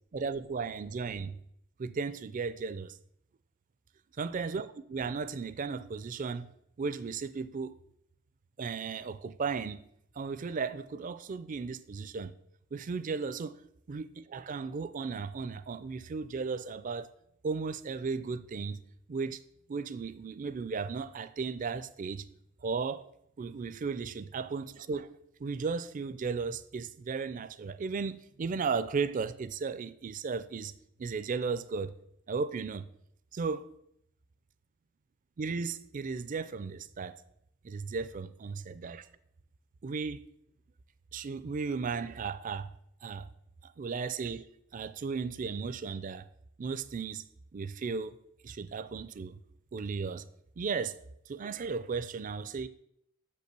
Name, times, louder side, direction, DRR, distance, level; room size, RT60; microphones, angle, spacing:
voice 1, 0.1-1.4 1.8-2.9 4.2-6.5 6.8-7.7 8.6-9.8 10.2-12.3 12.7-13.6 13.9-17.1 17.4-18.8 19.1-19.4 19.7-22.2 22.6-23.0 23.4-25.1 25.4-30.7 31.0-31.9 32.3-32.9 33.3-33.7 35.4-37.2 37.6-39.0 39.8-40.2 41.1-42.7 43.0-43.3 43.6-44.5 44.7-46.3 46.6-47.2 47.5-48.2 48.4-49.4 49.7-50.2 50.6-51.0 51.3-52.7, right 5 dB, 40° right, 0.4 m, -35 dB
6.2 x 5.3 x 6.7 m
head